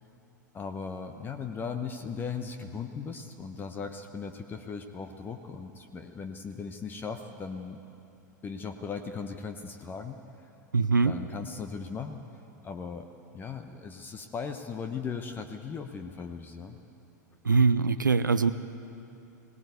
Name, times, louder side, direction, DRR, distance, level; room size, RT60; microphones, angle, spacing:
voice 1, 0.5-7.8 8.4-10.5 11.0-12.2 12.6-13.1 13.3-16.8, left 5 dB, 20° left, 6 dB, 1.0 m, -38 dB
voice 2, 10.7-11.1 17.4-18.5, right 4 dB, 80° right, 11 dB, 0.6 m, -22 dB
20.0 x 19.0 x 8.2 m, 2.7 s
figure-of-eight pair, 95°, 10 cm